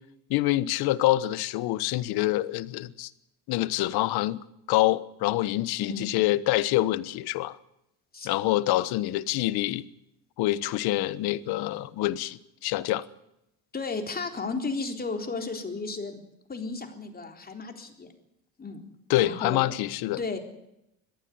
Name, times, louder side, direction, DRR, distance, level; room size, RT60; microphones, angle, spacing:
voice 1, 0.3-3.1 3.5-4.4 4.7-7.6 8.2-9.8 10.4-13.1 19.1-20.2, left 16 dB, 75° left, 1.3 m, -26 dB
voice 2, 5.8-6.1 8.1-8.3 13.7-16.2 16.5-18.1 18.6-18.8 19.1-19.7 20.2-20.4, left 4 dB, 25° left, 3.8 m, -34 dB
21.5 x 15.0 x 9.7 m
cardioid pair, 110°, 38 cm